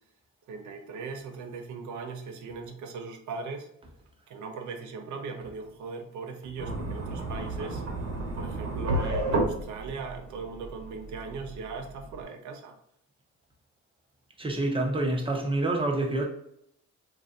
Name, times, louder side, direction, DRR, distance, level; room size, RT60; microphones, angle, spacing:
voice 1, 0.5-3.7 4.3-7.8 8.3-12.8, right 4 dB, 75° right, 0.6 m, -39 dB
sound 1, 6.6-12.2, right 2 dB, 60° right, 1.1 m, -32 dB
voice 2, 14.4-16.3, right 2 dB, 15° right, 0.8 m, -27 dB
3.0 x 2.6 x 2.5 m
cardioid pair, 90°, 30 cm